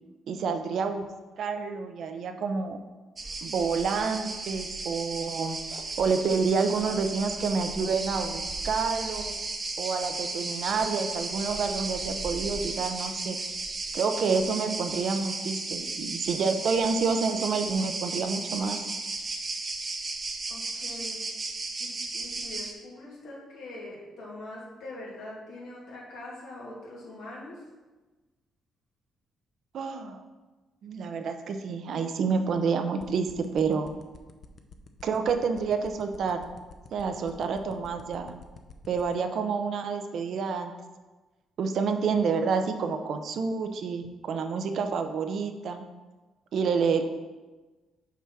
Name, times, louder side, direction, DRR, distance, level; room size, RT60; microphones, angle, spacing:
voice 1, 0.3-1.0 1.4-2.8 3.4-9.3 9.8-13.4 13.9-18.8 29.7-30.2 30.8-33.9 35.0-36.5 36.9-38.4 38.9-40.7 41.6-45.8 46.5-47.0, right 5 dB, 65° right, 6 dB, 0.7 m, -28 dB
sound 1, 3.2-22.7, right 3 dB, 35° right, 0.9 m, -34 dB
voice 2, 20.5-21.2 21.8-27.6, left 2 dB, 85° left, -5 dB, 2.4 m, -43 dB
sound 2, 33.0-39.1, left 6 dB, 50° left, 0.7 m, -47 dB
6.0 x 4.5 x 5.8 m, 1.2 s
cardioid pair, 90°, 0 cm